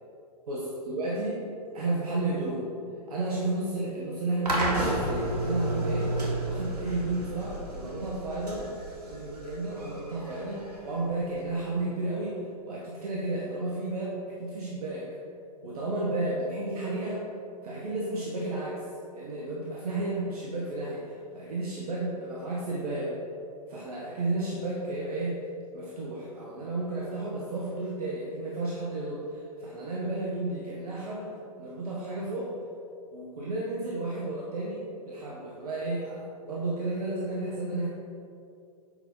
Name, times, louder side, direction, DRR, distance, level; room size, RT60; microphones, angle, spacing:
voice 1, 0.5-1.4 1.7-2.7 3.1-6.1 6.4-8.7 9.1-15.2 15.6-17.2 17.6-18.8 19.1-23.2 23.7-25.4 25.7-32.5 33.1-37.9, right 2 dB, 70° right, -5 dB, 1.6 m, -32 dB
sound 1, 4.5-11.5, right 1 dB, 90° right, 2.0 m, -32 dB
8.2 x 5.6 x 5.4 m, 2.5 s
hypercardioid pair, 120°, 20 cm